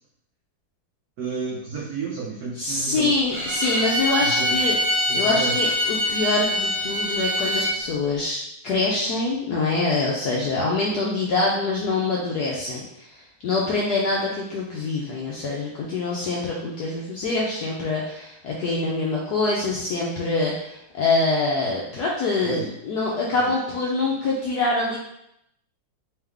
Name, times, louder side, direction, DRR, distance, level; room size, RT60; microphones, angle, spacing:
voice 1, 1.2-3.4 4.2-4.8 5.1-5.6 22.4-22.7 23.4-23.8, right 5 dB, 90° right, -2 dB, 0.8 m, -32 dB
voice 2, 2.6-4.8 5.1-8.4 8.6-12.8 13.4-25.0, left 3 dB, 75° left, -4 dB, 0.9 m, -25 dB
Bowed string instrument, 3.3-7.7, left 1 dB, 25° right, 0.5 m, -24 dB
3.6 x 3.5 x 3.4 m, 0.79 s
omnidirectional pair, 2.4 m